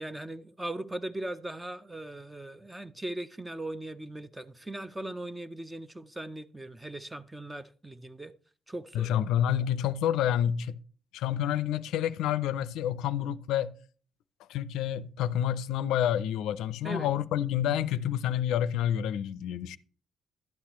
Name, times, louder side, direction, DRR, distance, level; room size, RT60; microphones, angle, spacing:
voice 1, 0.0-8.3 8.7-9.2 16.8-17.1, right 1 dB, 10° right, 0.5 m, -39 dB
voice 2, 8.9-10.7 11.1-13.8 14.5-19.8, left 10 dB, 90° left, 0.4 m, -28 dB
11.5 x 8.5 x 3.0 m
cardioid pair, 105°, 0 cm